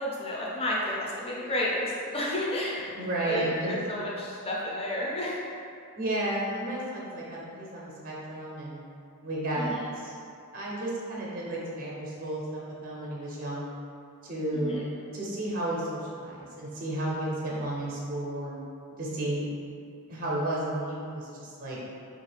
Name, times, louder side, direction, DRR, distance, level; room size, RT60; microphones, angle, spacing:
voice 1, 0.0-2.9 3.2-5.4 9.6-9.8 14.6-14.8, left 1 dB, 25° left, -5 dB, 0.5 m, -31 dB
voice 2, 2.9-3.9 6.0-8.8 9.2-10.1 10.5-13.7 14.2-18.6 19.0-19.5 20.1-21.8, right 1 dB, 40° right, -5 dB, 0.5 m, -33 dB
3.1 x 2.4 x 3.2 m, 2.4 s
head